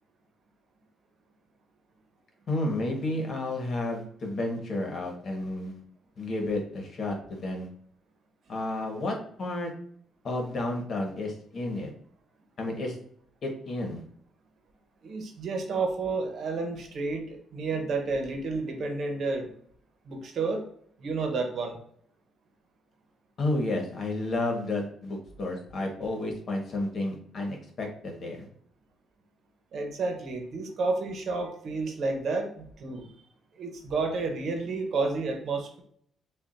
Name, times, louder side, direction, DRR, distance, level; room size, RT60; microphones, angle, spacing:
voice 1, 2.5-5.8 6.2-7.7 8.5-9.7 10.2-11.9 12.6-12.9 13.4-14.0 23.4-28.5, left 2 dB, 50° left, 1 dB, 1.4 m, -31 dB
voice 2, 15.0-19.5 20.1-20.6 21.0-21.8 29.7-33.1 33.6-35.8, right 3 dB, 60° right, 4 dB, 1.0 m, -31 dB
6.9 x 2.5 x 2.6 m, 0.65 s
cardioid pair, 90°, 0 cm